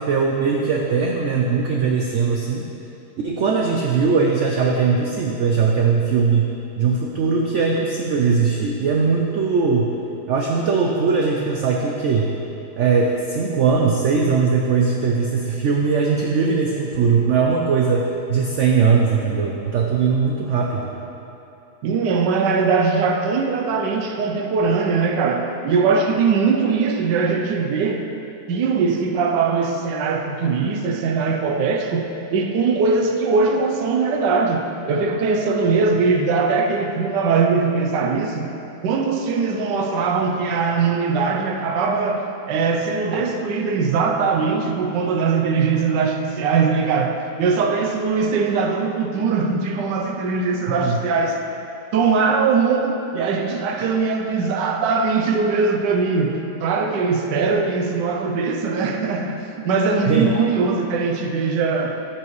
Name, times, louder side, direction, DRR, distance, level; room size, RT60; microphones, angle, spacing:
voice 1, 0.0-2.6 3.2-6.5 6.8-9.9 10.3-12.3 12.8-20.9 50.7-51.0 60.1-60.3, right 5 dB, 65° right, 0 dB, 0.7 m, -20 dB
voice 2, 21.8-28.1 28.5-38.5 38.8-51.4 51.9-62.0, right 4 dB, 85° right, 3 dB, 1.3 m, -21 dB
13.5 x 5.9 x 3.1 m, 2.9 s
omnidirectional pair, 1.8 m